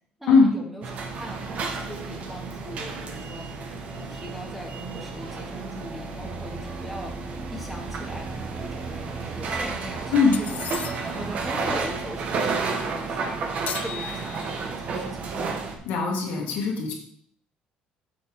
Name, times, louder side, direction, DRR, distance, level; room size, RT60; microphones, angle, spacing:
voice 1, 0.2-0.9 1.2-3.5 4.0-7.2 7.5-10.7 11.1-15.3, right 1 dB, 5° right, -1 dB, 2.0 m, -40 dB
sound 1, 0.8-15.8, right 4 dB, 50° right, 1.4 m, -32 dB
sound 2, 6.2-11.9, right 4 dB, 35° right, 1.0 m, -39 dB
sound 3, 10.3-11.3 13.7-14.7, left 10 dB, 55° left, 0.5 m, -36 dB
voice 2, 15.9-16.9, left 4 dB, 85° left, -1 dB, 2.2 m, -20 dB
8.5 x 6.2 x 3.7 m, 0.64 s
cardioid pair, 115°, 3 cm